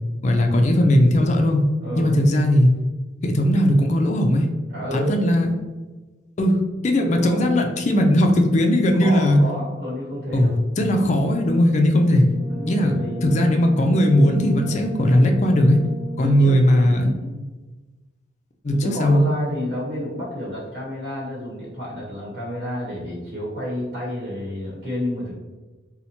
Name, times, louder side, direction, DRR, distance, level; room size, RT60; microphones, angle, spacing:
voice 1, 0.2-1.7 2.0-2.7 3.2-4.5 4.9-5.5 6.4-9.4 10.3-12.3 12.7-12.9 13.2-15.8 16.2-17.1 18.6-19.2, left 1 dB, 40° left, 3 dB, 0.4 m, -18 dB
voice 2, 1.8-2.2 4.7-5.2 7.0-7.6 9.0-10.5 12.5-13.3 16.2-17.4 18.7-25.3, left 1 dB, 60° right, -5 dB, 1.0 m, -30 dB
Brass instrument, 12.2-16.5, equal, 35° right, 1.0 m, -36 dB
2.8 x 2.1 x 4.1 m, 1.2 s
head